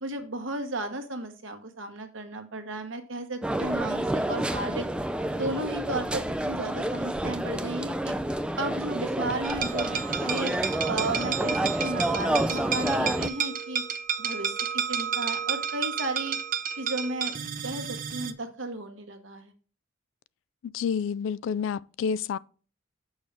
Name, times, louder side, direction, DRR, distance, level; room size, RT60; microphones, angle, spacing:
voice 1, 0.0-4.9 5.3-8.2 8.6-10.5 10.9-13.8 14.2-16.4 16.8-17.3 17.6-19.5, right 2 dB, 75° right, 1.4 m, -34 dB
sound 1, 3.4-13.3, right 1 dB, 5° right, 0.3 m, -29 dB
sound 2, 9.4-18.3, right 7 dB, 45° right, 0.6 m, -31 dB
voice 2, 20.6-22.4, left 6 dB, 75° left, 0.3 m, -29 dB
6.6 x 6.3 x 3.4 m
head